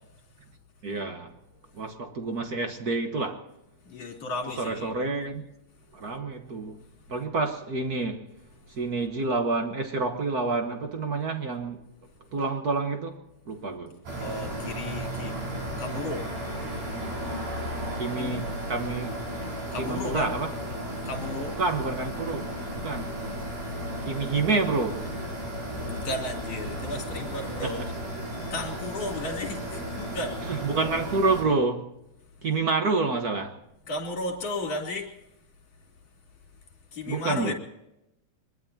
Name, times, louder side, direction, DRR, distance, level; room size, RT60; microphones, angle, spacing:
voice 1, 0.8-1.3 1.7-3.4 4.6-5.5 5.9-6.8 7.1-8.2 8.7-11.8 12.3-13.2 13.5-13.9 18.0-19.2 19.8-20.5 21.6-22.5 22.8-23.1 24.0-25.3 27.6-27.9 30.5-31.9 32.4-33.6 37.1-37.5, right 3 dB, 55° right, 1.0 m, -28 dB
voice 2, 3.9-4.9 14.1-15.3 15.8-16.3 18.2-18.4 19.7-20.3 21.1-21.6 25.9-27.9 28.5-30.4 33.9-35.1 36.9-37.5, left 2 dB, 55° left, 4.3 m, -34 dB
sound 1, 14.1-31.4, equal, 80° right, 7.1 m, -34 dB
24.0 x 21.5 x 2.8 m
omnidirectional pair, 3.5 m